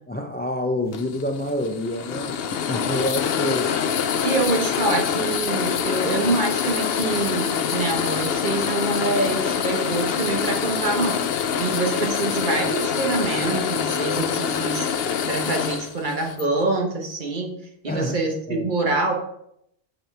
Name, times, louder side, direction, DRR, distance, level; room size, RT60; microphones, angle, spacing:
voice 1, 0.1-3.7 17.9-18.2 18.5-18.7, left 1 dB, 15° left, 4 dB, 0.3 m, -27 dB
sound 1, 0.9-16.4, left 7 dB, 70° left, 0.8 m, -25 dB
voice 2, 4.2-11.2 11.6-17.5 17.8-19.1, right 2 dB, 50° right, 2 dB, 1.3 m, -25 dB
6.8 x 6.5 x 3.4 m, 0.74 s
omnidirectional pair, 1.1 m